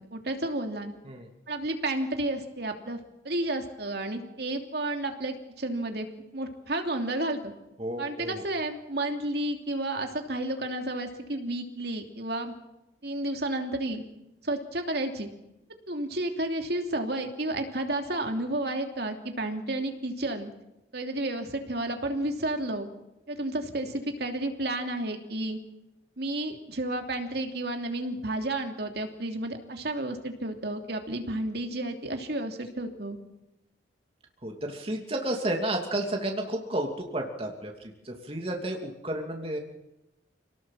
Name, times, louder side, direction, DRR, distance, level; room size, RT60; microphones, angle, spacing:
voice 1, 0.1-0.9 1.5-3.0 3.2-6.1 6.3-7.5 8.0-12.5 13.0-14.0 14.4-15.3 15.9-20.5 20.9-22.9 23.3-25.6 26.2-33.2, right 1 dB, 60° right, 4 dB, 2.9 m, -31 dB
voice 2, 7.8-8.4 34.4-39.6, right 1 dB, 30° right, 1 dB, 2.8 m, -32 dB
27.5 x 19.0 x 7.6 m, 0.91 s
head